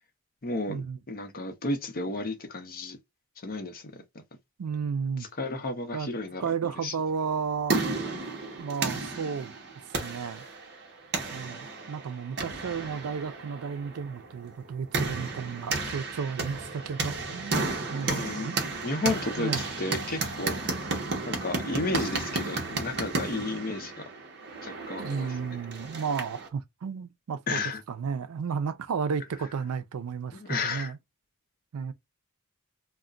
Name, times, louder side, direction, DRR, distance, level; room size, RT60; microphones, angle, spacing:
voice 1, 0.4-0.8 1.1-3.0 3.4-4.0 5.4-6.9 18.1-18.5 18.8-20.6 21.3-24.1 24.6-25.4 27.5-27.8 30.3-30.9, left 2 dB, 45° left, 0.6 m, -32 dB
voice 2, 4.6-5.3 5.9-6.1 6.4-7.8 8.6-9.5 10.0-10.4 11.3-18.6 19.4-19.6 25.0-27.6 27.9-31.0 31.7-31.9, right 6 dB, 85° right, 0.4 m, -33 dB
sound 1, 7.3-26.5, right 3 dB, 50° right, 0.8 m, -33 dB
2.3 x 2.1 x 3.6 m
head